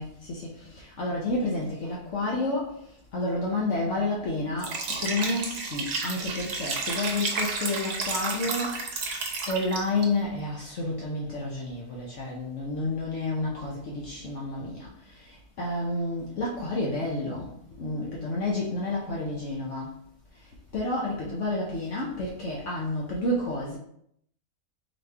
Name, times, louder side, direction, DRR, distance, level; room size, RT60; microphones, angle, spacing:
voice 1, 0.0-20.0 20.3-23.8, left 2 dB, 65° left, -3 dB, 1.0 m, -30 dB
Liquid, 4.6-10.1, right 3 dB, 55° right, 0.9 m, -31 dB
4.2 x 3.1 x 3.3 m, 0.70 s
omnidirectional pair, 1.4 m